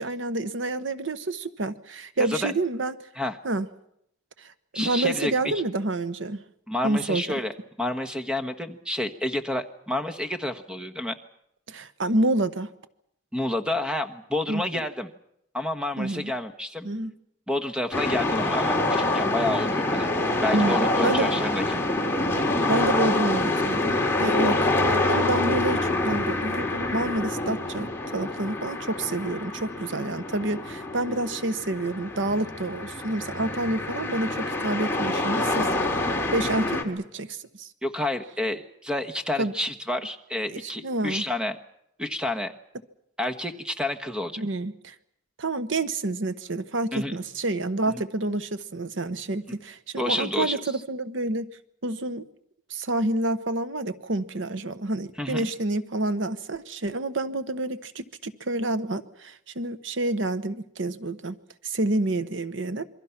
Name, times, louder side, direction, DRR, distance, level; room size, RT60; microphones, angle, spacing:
voice 1, 0.0-2.9 3.4-3.7 4.4-6.4 6.8-7.4 11.7-12.7 14.5-14.8 16.0-16.3 16.8-17.1 20.5-21.3 22.7-27.9 28.1-36.0 36.3-37.7 39.4-39.5 40.5-41.2 44.4-44.9 45.4-51.5 51.8-52.2 52.7-61.4 61.6-62.8, right 2 dB, 75° right, 12 dB, 1.1 m, -28 dB
voice 2, 2.2-2.6 3.1-3.4 4.7-5.5 6.7-7.5 7.8-11.1 13.3-15.1 15.5-16.9 17.5-20.1 20.4-21.8 37.8-41.6 42.0-42.5 43.2-44.4 46.9-47.2 47.9-48.0 50.0-50.6 55.2-55.5, left 1 dB, 5° right, 8 dB, 1.3 m, -29 dB
sound 1, 17.9-36.8, left 2 dB, 10° left, 2.6 m, -26 dB
27.5 x 23.5 x 5.9 m, 0.75 s
head